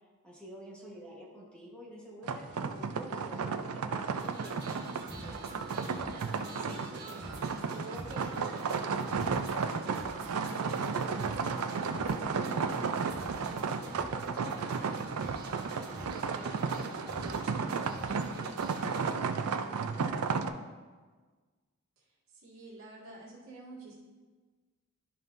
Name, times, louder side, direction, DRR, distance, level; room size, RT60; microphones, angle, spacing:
voice 1, 0.2-4.7 5.2-7.3 7.7-14.9 15.6-20.6, right 1 dB, 5° left, -4 dB, 1.3 m, -50 dB
sound 1, 2.2-20.5, right 5 dB, 90° right, 0.5 m, -33 dB
sound 2, 4.1-19.1, right 2 dB, 50° right, 1.3 m, -46 dB
voice 2, 22.4-23.9, right 2 dB, 65° right, -5 dB, 2.0 m, -48 dB
12.0 x 5.4 x 2.6 m, 1.4 s
head